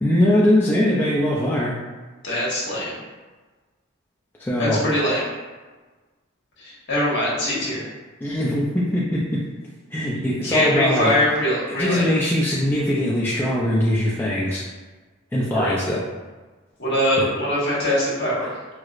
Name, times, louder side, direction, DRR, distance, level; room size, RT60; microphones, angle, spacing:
voice 1, 0.0-1.7 4.4-4.8 8.2-9.4 9.9-11.1 11.7-14.6 15.3-16.0 17.2-17.3, left 1 dB, 10° left, -6 dB, 0.3 m, -21 dB
voice 2, 2.2-3.0 4.6-5.3 6.6-7.8 10.4-12.1 15.5-15.7 16.8-18.5, equal, 55° left, -7 dB, 1.2 m, -22 dB
4.6 x 2.0 x 2.4 m, 1.3 s
head